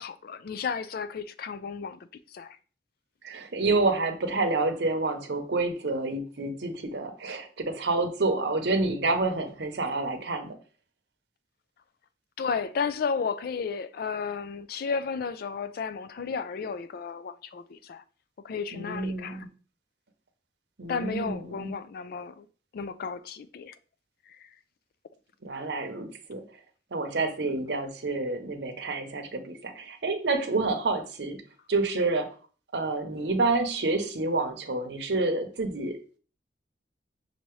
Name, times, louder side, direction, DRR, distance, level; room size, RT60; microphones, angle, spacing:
voice 1, 0.0-2.0 2.3-2.6 12.4-18.0 18.4-19.5 20.9-22.5 22.7-23.7 24.3-24.5, left 5 dB, 55° left, 0.4 m, -33 dB
voice 2, 3.2-10.6 18.7-19.5 20.8-21.8 25.4-26.4 26.9-31.4 31.7-32.3 32.7-36.2, right 3 dB, 70° right, 0.8 m, -28 dB
5.7 x 2.7 x 3.1 m
head